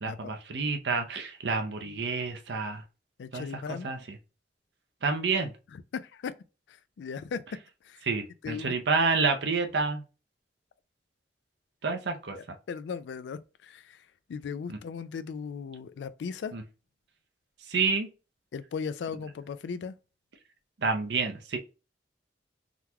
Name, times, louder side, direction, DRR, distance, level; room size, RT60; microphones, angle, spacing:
voice 1, 0.0-2.8 3.3-4.2 5.0-5.5 8.0-10.0 11.8-12.4 14.7-14.8 16.5-16.6 17.7-18.1 20.8-21.6, right 4 dB, 75° right, 0.7 m, -29 dB
voice 2, 3.2-3.9 5.7-6.3 6.7-7.4 7.8-8.1 8.4-8.8 12.3-14.0 14.3-16.5 18.5-19.9, left 6 dB, 80° left, 0.3 m, -37 dB
3.7 x 2.2 x 2.9 m
head